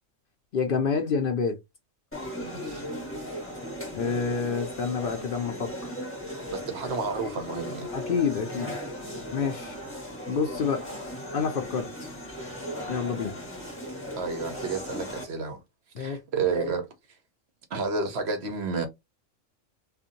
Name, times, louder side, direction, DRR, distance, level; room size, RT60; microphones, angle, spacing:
voice 1, 0.5-1.6 3.9-6.0 7.9-8.7 9.3-9.8 10.3-10.9 11.3-12.2 12.9-13.3 15.9-16.2, left 5 dB, 60° left, 0.6 m, -28 dB
sound 1, 2.1-15.2, equal, 10° left, 1.3 m, -37 dB
voice 2, 2.4-2.9 6.5-7.9 14.2-15.6 16.0-16.9 17.7-18.9, right 4 dB, 60° right, 0.9 m, -30 dB
2.6 x 2.5 x 2.6 m
omnidirectional pair, 1.4 m